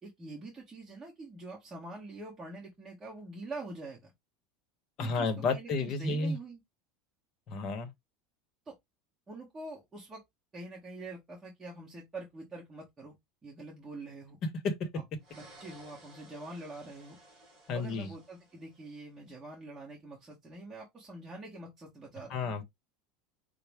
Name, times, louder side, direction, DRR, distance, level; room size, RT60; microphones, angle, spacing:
voice 1, 0.0-4.1 5.0-6.6 8.7-8.8 9.3-10.2 10.5-13.1 13.4-14.4 14.9-15.0 15.3-17.2 17.7-22.6, right 2 dB, 15° right, 1.1 m, -45 dB
voice 2, 5.0-6.4 7.5-7.9 14.6-14.9 17.7-18.1 22.3-22.6, left 3 dB, 35° left, 0.9 m, -31 dB
sound 1, 15.2-19.1, right 1 dB, 35° right, 3.0 m, -57 dB
5.6 x 2.0 x 3.4 m
supercardioid pair, 155°, 0 cm